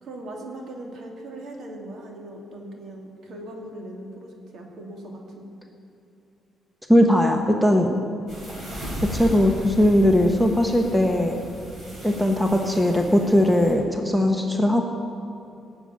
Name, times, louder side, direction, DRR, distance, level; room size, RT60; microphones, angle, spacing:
voice 1, 0.0-5.5, right 1 dB, 60° right, 1 dB, 2.6 m, -39 dB
voice 2, 6.9-7.9 9.1-11.4 12.0-14.9, left 1 dB, ahead, 3 dB, 1.0 m, -19 dB
sound 1, 8.3-13.7, equal, 40° right, 4.6 m, -36 dB
18.5 x 7.0 x 8.8 m, 2.7 s
cardioid pair, 155°, 0 cm